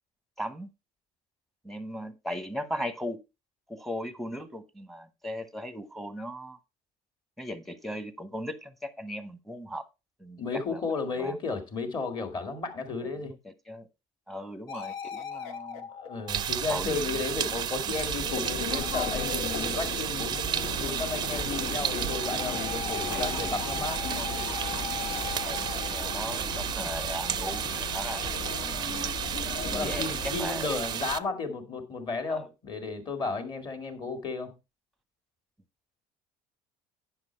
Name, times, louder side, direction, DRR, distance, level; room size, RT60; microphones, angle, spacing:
voice 1, 0.4-0.7 1.6-3.2 3.7-6.6 7.4-9.9 10.2-10.4 10.7-11.4 13.0-13.9 14.3-15.9 16.7-18.0 18.9-19.0 20.7-21.1 21.8-21.9 23.1-23.5 24.1-24.3 25.4-29.1 29.7-30.7 32.3-32.5, equal, ahead, 0.9 m, -38 dB
voice 2, 10.4-13.3 16.0-24.0 29.6-34.6, left 4 dB, 35° left, 1.8 m, -33 dB
sound 1, 14.7-17.3 20.8-27.3, left 6 dB, 90° left, 1.2 m, -40 dB
sound 2, 16.3-31.2, right 10 dB, 30° right, 0.4 m, -32 dB
sound 3, 17.9-30.4, left 6 dB, 75° left, 2.1 m, -37 dB
9.8 x 6.0 x 4.4 m
cardioid pair, 145°, 13 cm